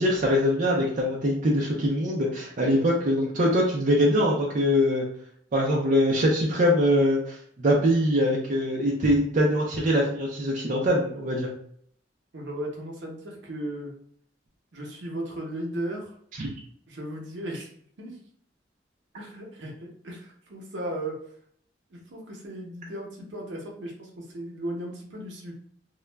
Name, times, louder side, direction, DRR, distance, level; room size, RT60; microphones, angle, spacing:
voice 1, 0.0-5.0 5.5-11.5 16.4-16.5, equal, 45° right, -3 dB, 0.5 m, -23 dB
voice 2, 12.3-13.9 14.7-16.1 16.9-17.7 18.0-18.2 19.1-21.2 21.9-25.5, right 1 dB, 75° right, -1 dB, 0.7 m, -36 dB
2.3 x 2.0 x 3.3 m, 0.64 s
head